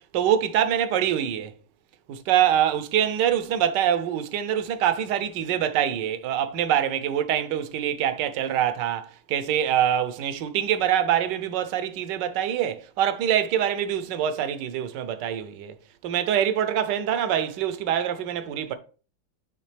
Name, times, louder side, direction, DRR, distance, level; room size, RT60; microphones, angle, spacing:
voice 1, 0.1-1.5 2.1-15.7 16.0-18.7, right 10 dB, 70° right, 1.2 m, -24 dB
10.0 x 3.5 x 3.3 m
omnidirectional pair, 2.3 m